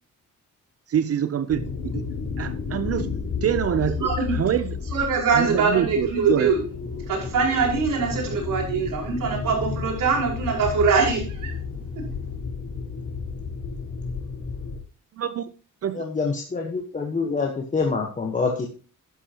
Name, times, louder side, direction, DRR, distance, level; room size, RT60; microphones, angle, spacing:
voice 1, 0.9-2.0 2.4-3.1 3.4-4.1 4.3-4.7 5.4-6.5 15.2-15.5 15.8-16.0, right 9 dB, 50° right, 0.7 m, -25 dB
sound 1, 1.5-14.8, left 5 dB, 65° left, 3.4 m, -32 dB
voice 2, 4.0-4.4 4.9-6.6 7.1-11.5 12.0-12.1, right 5 dB, 85° right, 5.5 m, -23 dB
voice 3, 15.9-18.7, left 4 dB, 25° left, 1.2 m, -26 dB
13.0 x 10.0 x 2.9 m
wide cardioid pair, 175°, 32 cm